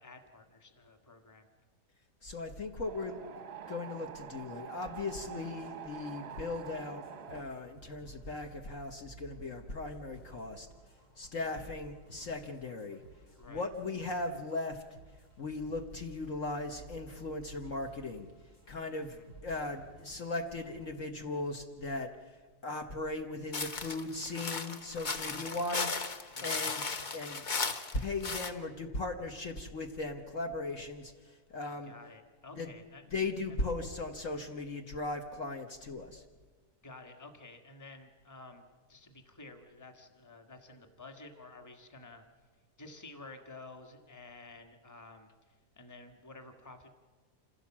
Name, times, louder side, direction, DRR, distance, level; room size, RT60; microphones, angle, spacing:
voice 1, 0.0-1.5 11.4-11.7 13.4-13.7 19.0-19.3 25.2-25.6 26.3-26.7 31.8-33.0 33.5-33.6 36.8-42.2 42.8-46.9, left 2 dB, 10° left, 5 dB, 1.5 m, -52 dB
voice 2, 2.2-3.2 3.7-7.0 7.3-10.7 11.2-13.0 13.5-14.8 15.4-18.3 18.7-19.2 19.4-22.1 22.6-26.9 27.1-27.4 27.9-31.1 31.5-31.9 32.5-32.7 33.1-36.2, left 2 dB, 55° left, 4 dB, 1.6 m, -38 dB
Wind, 2.9-7.4, right 8 dB, 50° right, 0.9 m, -46 dB
sound 1, 5.5-21.0, right 4 dB, 75° left, 6.3 m, -55 dB
sound 2, 23.5-28.5, left 4 dB, 35° left, 0.9 m, -36 dB
27.0 x 15.5 x 7.4 m, 1.4 s
omnidirectional pair, 1.7 m